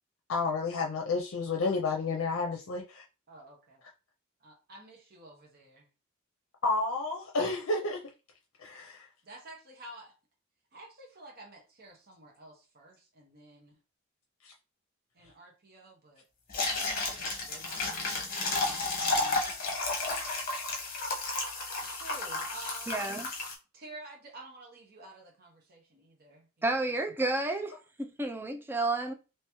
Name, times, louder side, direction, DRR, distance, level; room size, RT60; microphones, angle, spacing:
voice 1, 0.3-3.0 6.6-8.0 8.6-9.1 14.4-14.5, left 3 dB, 75° left, 0.6 m, -31 dB
voice 2, 3.3-3.8 4.4-5.9 9.2-10.1 10.7-13.8 15.1-16.2 17.0-19.4 22.0-23.0 23.7-26.9, right 2 dB, 50° right, 1.0 m, -51 dB
sound 1, 16.5-23.5, left 3 dB, 45° left, 1.0 m, -32 dB
voice 3, 22.9-23.3 26.6-27.7 28.0-29.1, right 2 dB, 10° right, 0.4 m, -31 dB
3.4 x 3.0 x 3.0 m
head